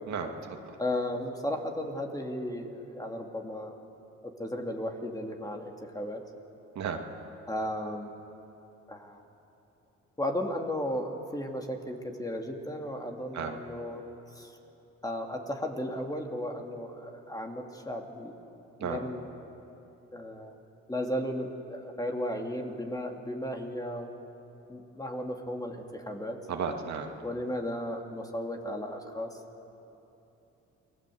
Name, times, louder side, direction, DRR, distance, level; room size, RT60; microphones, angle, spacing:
voice 1, 0.1-0.6 6.8-7.0 13.3-13.6 18.8-19.0 26.5-27.1, right 6 dB, 65° right, 3 dB, 2.4 m, -34 dB
voice 2, 0.8-3.8 4.2-6.2 7.5-8.1 8.9-9.2 10.2-14.0 14.3-14.5 15.0-18.3 18.8-19.3 20.1-20.5 20.9-24.1 24.7-26.4 27.2-29.3, left 1 dB, 10° left, 2 dB, 2.7 m, -35 dB
28.5 x 20.5 x 7.9 m, 2.9 s
cardioid pair, 90°, 30 cm